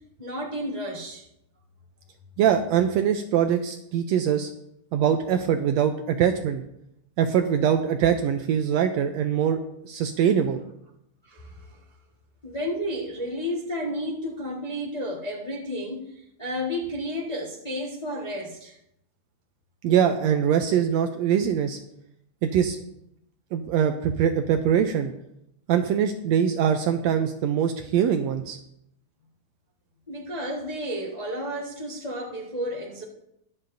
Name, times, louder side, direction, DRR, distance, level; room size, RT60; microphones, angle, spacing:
voice 1, 0.2-1.2 11.2-11.8 12.4-18.8 30.1-33.0, equal, 25° left, -3 dB, 0.8 m, -32 dB
voice 2, 2.4-4.5 4.9-6.6 7.2-10.6 19.8-21.8 22.4-22.8 23.5-25.1 25.7-28.6, right 8 dB, 75° right, 7 dB, 1.6 m, -23 dB
22.0 x 7.6 x 2.7 m, 0.78 s
omnidirectional pair, 3.5 m